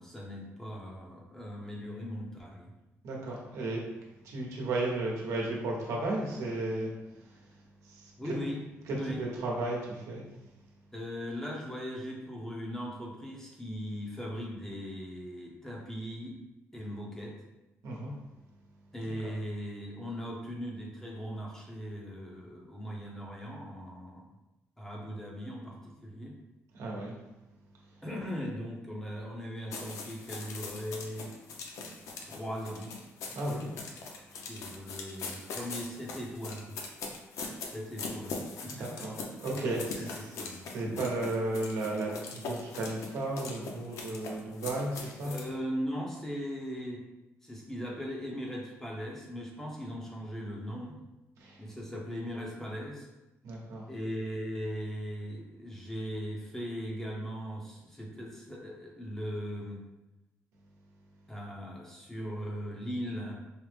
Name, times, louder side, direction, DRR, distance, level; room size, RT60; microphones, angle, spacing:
voice 1, 0.0-2.7 8.2-8.6 8.9-9.2 10.9-16.4 16.7-17.4 18.9-24.3 24.8-26.4 28.0-31.3 32.2-32.9 33.4-33.9 34.3-36.8 37.6-39.1 39.4-41.0 45.2-47.0 47.4-51.0 51.6-53.1 53.9-59.8 61.3-63.4, equal, 10° left, -2 dB, 0.8 m, -39 dB
voice 2, 3.0-3.8 4.2-6.9 7.8-8.1 8.9-10.2 17.8-18.1 26.7-27.1 33.3-33.7 38.7-40.1 40.7-45.3 51.4-51.6 53.4-53.9, right 2 dB, 85° right, -2 dB, 0.9 m, -34 dB
sound 1, 29.7-45.5, left 4 dB, 90° left, 0.6 m, -41 dB
4.8 x 2.0 x 3.3 m, 0.99 s
cardioid pair, 125°, 5 cm